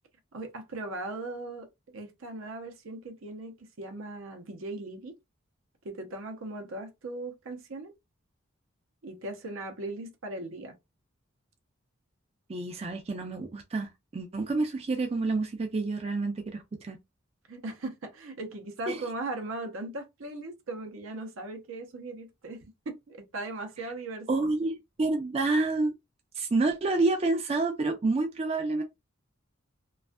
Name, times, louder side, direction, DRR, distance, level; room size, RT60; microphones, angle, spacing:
voice 1, 0.3-5.1 5.8-7.9 9.0-10.7 17.5-24.3, right 2 dB, 80° right, 0.7 m, -38 dB
voice 2, 12.5-17.0 18.9-19.1 24.3-25.9 26.3-28.8, right 3 dB, 30° right, 0.3 m, -28 dB
2.5 x 2.3 x 2.2 m
head